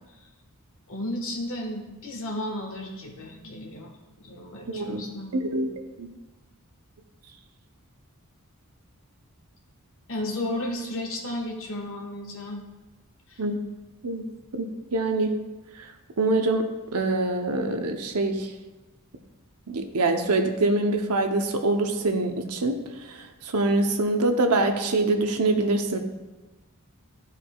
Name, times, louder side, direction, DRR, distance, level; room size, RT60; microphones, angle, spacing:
voice 1, 0.9-3.9 4.2-5.3 10.1-12.6 13.3-13.4, left 1 dB, 65° left, 1 dB, 1.4 m, -33 dB
voice 2, 4.7-5.0 5.3-5.7 6.0-6.1 13.4-13.6 14.0-14.2 14.5-15.3 16.2-16.6 16.9-18.5 19.7-22.8 23.5-26.0, right 2 dB, 80° right, 5 dB, 0.8 m, -24 dB
13.0 x 4.8 x 2.3 m, 1.2 s
head